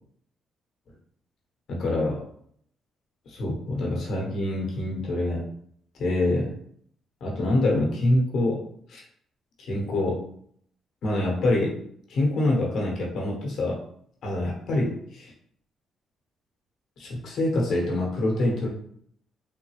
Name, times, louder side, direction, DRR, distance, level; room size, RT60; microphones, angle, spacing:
voice 1, 1.7-2.3 3.3-5.4 6.0-6.6 7.2-8.6 8.9-9.0 9.6-10.2 11.0-11.8 12.1-13.8 14.2-15.3 17.0-18.7, left 1 dB, 65° left, -2 dB, 1.1 m, -25 dB
3.6 x 2.2 x 3.2 m, 0.65 s
cardioid pair, 90°, 0 cm